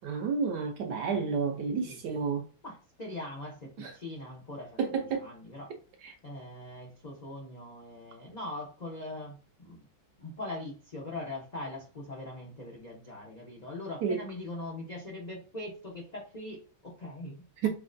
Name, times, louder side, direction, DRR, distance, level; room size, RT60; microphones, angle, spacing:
voice 1, 0.0-2.4 3.8-3.9 4.8-5.3 6.0-6.1 14.0-14.2 17.6-17.7, right 5 dB, 70° right, 1.0 m, -30 dB
voice 2, 1.6-2.0 2.6-5.7 6.2-9.8 10.2-17.7, left 2 dB, 75° left, 0.4 m, -41 dB
5.5 x 2.1 x 2.5 m
omnidirectional pair, 2.1 m